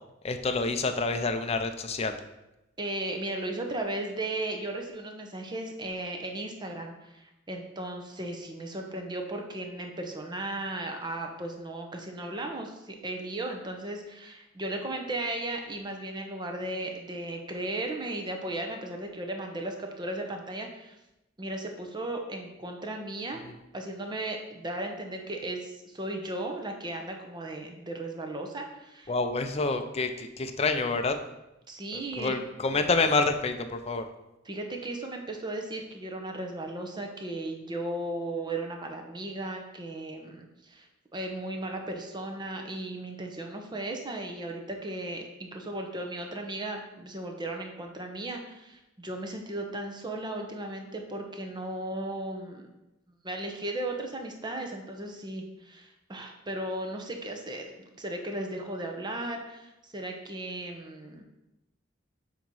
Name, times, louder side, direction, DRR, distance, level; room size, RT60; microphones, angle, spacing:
voice 1, 0.2-2.2 23.4-23.5 29.1-31.2 31.9-34.0, left 3 dB, 30° left, 7 dB, 0.5 m, -28 dB
voice 2, 2.8-21.0 21.4-23.4 23.7-29.1 31.7-32.4 34.4-40.9 41.1-52.7 53.2-61.2, right 1 dB, 25° right, 3 dB, 0.9 m, -36 dB
7.5 x 3.0 x 5.3 m, 0.93 s
head